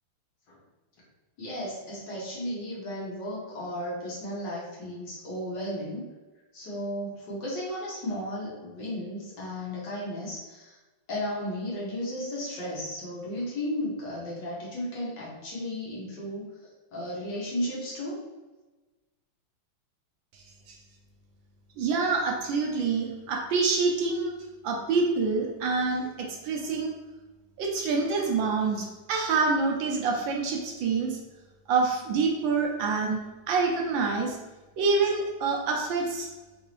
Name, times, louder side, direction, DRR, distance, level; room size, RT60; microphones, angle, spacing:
voice 1, 1.4-6.1 6.5-10.8 11.1-16.5 16.9-18.2, left 1 dB, 60° left, -5 dB, 1.6 m, -34 dB
voice 2, 20.3-20.8 21.8-24.3 24.6-26.9 27.6-31.2 31.7-33.2 33.5-34.4 34.8-36.3, right 4 dB, 75° right, 1 dB, 1.3 m, -26 dB
4.0 x 2.7 x 3.0 m, 1.2 s
omnidirectional pair, 2.3 m